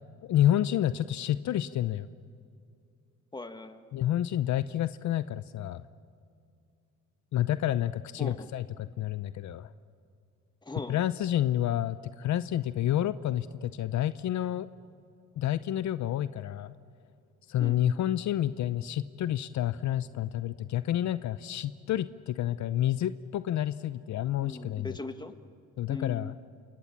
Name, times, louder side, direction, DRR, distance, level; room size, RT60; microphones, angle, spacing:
voice 1, 0.3-2.1 3.9-5.8 7.3-9.7 10.9-14.7 15.4-16.7 17.5-25.0 25.8-26.3, left 12 dB, 70° left, 14 dB, 0.7 m, -29 dB
voice 2, 3.3-3.8 8.2-8.5 10.6-11.0 17.6-17.8 24.4-25.5 25.9-26.4, left 2 dB, 15° left, 7 dB, 1.7 m, -40 dB
28.0 x 28.0 x 7.4 m, 2.4 s
cardioid pair, 90°, 30 cm